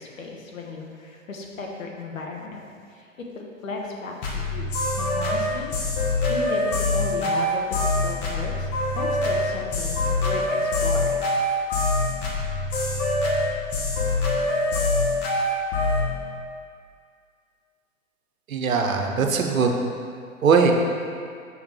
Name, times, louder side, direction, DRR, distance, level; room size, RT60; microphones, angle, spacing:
voice 1, 0.0-3.1 3.3-5.7 6.3-11.2, left 3 dB, 70° left, 0 dB, 1.2 m, -36 dB
sound 1, 4.2-16.1, left 2 dB, 40° left, 1.1 m, -24 dB
voice 2, 18.5-19.7 20.4-20.7, right 5 dB, 70° right, 3 dB, 0.9 m, -20 dB
6.0 x 3.6 x 4.6 m, 2.2 s
figure-of-eight pair, 115°, 42 cm